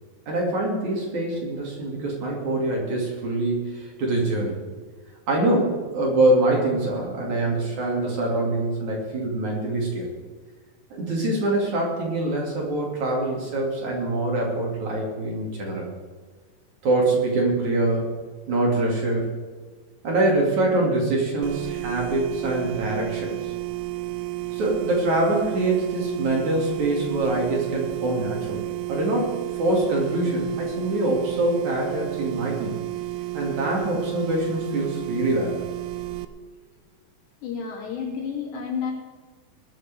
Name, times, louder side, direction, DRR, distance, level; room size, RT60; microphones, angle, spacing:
voice 1, 0.3-4.6 5.3-10.1 10.9-15.9 16.8-18.0 18.5-19.2 20.0-23.5 24.5-32.8 33.3-35.6, right 2 dB, 45° right, -2 dB, 3.7 m, -24 dB
sound 1, 21.4-36.3, right 18 dB, 80° right, 2.3 m, -32 dB
voice 2, 37.4-38.9, left 6 dB, 80° left, -2 dB, 5.1 m, -30 dB
20.5 x 13.0 x 3.6 m, 1.4 s
omnidirectional pair, 4.9 m